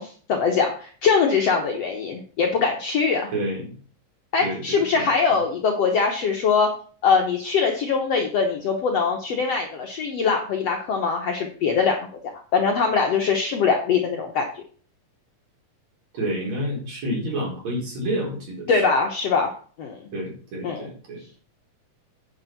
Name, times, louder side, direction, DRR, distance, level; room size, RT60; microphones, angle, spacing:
voice 1, 0.0-3.3 4.3-6.7 7.0-12.0 12.5-14.4 18.7-19.5 19.8-20.0 20.6-20.9, left 5 dB, 60° left, 2 dB, 1.8 m, -22 dB
voice 2, 3.3-3.7 4.4-5.4 16.1-18.8 20.1-21.2, right 1 dB, 50° right, -2 dB, 5.5 m, -29 dB
9.7 x 6.4 x 5.9 m, 0.42 s
omnidirectional pair, 4.1 m